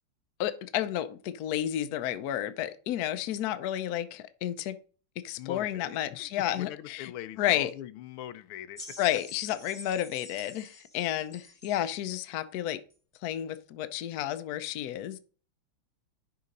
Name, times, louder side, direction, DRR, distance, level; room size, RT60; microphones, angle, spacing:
voice 1, 0.4-4.8 5.2-7.1 7.4-7.7 9.0-12.8 13.2-15.2, left 12 dB, 75° left, 0.9 m, -31 dB
voice 2, 5.4-6.3 6.6-9.0, left 12 dB, 90° left, 1.5 m, -42 dB
sound 1, 8.8-12.0 12.9-13.0, left 2 dB, 25° left, 0.9 m, -48 dB
10.5 x 3.8 x 5.2 m
omnidirectional pair, 2.3 m